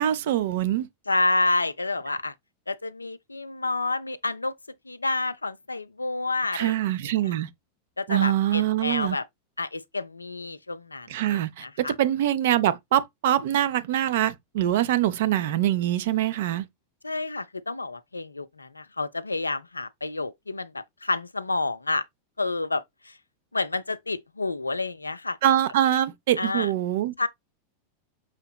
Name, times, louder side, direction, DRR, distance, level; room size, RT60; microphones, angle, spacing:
voice 1, 0.0-0.9 6.5-7.5 8.1-9.2 11.1-16.6 25.4-27.1, right 12 dB, 55° right, 0.4 m, -24 dB
voice 2, 1.1-2.3 2.7-4.5 4.9-6.7 8.0-9.2 9.6-11.9 17.0-22.0 22.4-23.1 23.5-25.4 26.4-26.7 27.2-27.3, left 3 dB, 80° left, 0.3 m, -29 dB
5.7 x 2.8 x 2.3 m
figure-of-eight pair, 90°, 0 cm